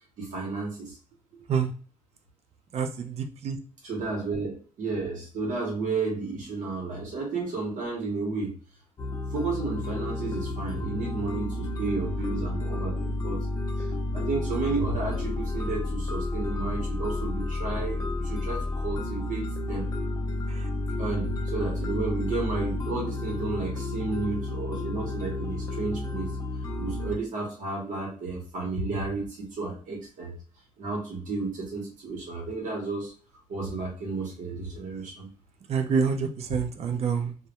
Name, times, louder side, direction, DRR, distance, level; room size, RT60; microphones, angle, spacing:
voice 1, 0.2-1.0 3.8-8.5 9.3-13.5 13.8-19.9 21.0-26.3 26.8-30.3 30.8-33.1 33.5-35.3, right 3 dB, 80° right, -1 dB, 0.9 m, -32 dB
voice 2, 2.7-3.6 35.7-37.3, right 6 dB, 55° right, 7 dB, 0.4 m, -27 dB
sound 1, 9.0-27.2, left 2 dB, 25° left, 0.4 m, -31 dB
2.1 x 2.1 x 2.8 m, 0.40 s
wide cardioid pair, 155°, 13 cm